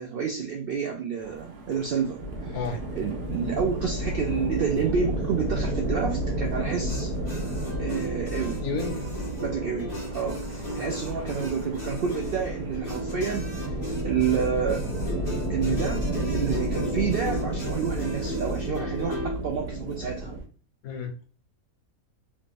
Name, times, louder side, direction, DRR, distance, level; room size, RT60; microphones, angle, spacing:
voice 1, 0.0-7.1 7.8-8.7 9.4-13.7 14.0-14.8 15.5-20.4, right 6 dB, 80° right, 2 dB, 0.5 m, -29 dB
sound 1, 1.2-20.5, right 2 dB, 55° right, 0.8 m, -48 dB
sound 2, 2.2-20.4, right 1 dB, 35° right, 1.5 m, -31 dB
sound 3, 6.9-19.4, equal, 30° left, 1.3 m, -36 dB
voice 2, 8.6-9.1 20.8-21.3, left 4 dB, 75° left, 5 dB, 1.2 m, -31 dB
3.2 x 3.1 x 2.5 m, 0.40 s
omnidirectional pair, 1.5 m